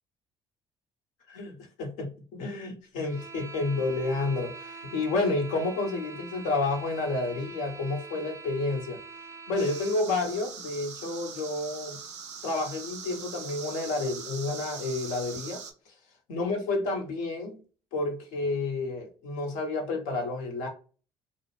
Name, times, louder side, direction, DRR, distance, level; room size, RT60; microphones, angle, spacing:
voice 1, 1.3-9.0 9.5-12.0 12.4-15.6 16.3-17.6 17.9-20.7, left 2 dB, 70° left, 0.8 m, -30 dB
sound 1, 3.0-10.1, right 4 dB, 20° right, 0.4 m, -44 dB
sound 2, 9.6-15.7, right 6 dB, 85° right, 0.4 m, -42 dB
2.4 x 2.0 x 2.9 m
hypercardioid pair, 55°, 15 cm